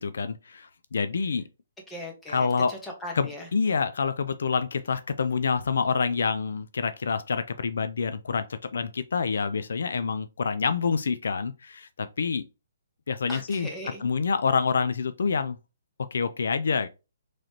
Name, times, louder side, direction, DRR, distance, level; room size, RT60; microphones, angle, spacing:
voice 1, 0.0-1.4 2.3-2.7 3.1-8.5 8.7-12.4 13.1-13.7 14.0-15.6 16.1-16.9, left 5 dB, 75° left, 0.4 m, -27 dB
voice 2, 1.9-3.5 13.3-14.0, left 1 dB, 10° left, 1.2 m, -38 dB
4.0 x 3.2 x 2.8 m
hypercardioid pair, 155°, 0 cm